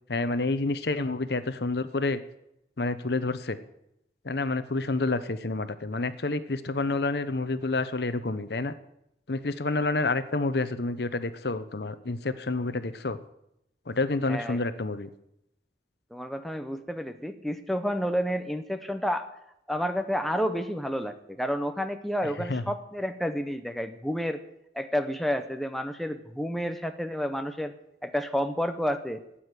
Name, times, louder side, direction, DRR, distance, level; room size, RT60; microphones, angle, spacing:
voice 1, 0.1-2.2 2.8-3.6 4.2-8.7 9.3-13.2 13.9-15.1 22.5-22.6, left 3 dB, 65° left, 12 dB, 0.9 m, -29 dB
voice 2, 14.3-14.6 16.1-19.3 19.7-24.4 24.7-27.7 28.0-29.2, equal, ahead, 7 dB, 0.8 m, -30 dB
14.0 x 8.6 x 9.6 m, 0.82 s
head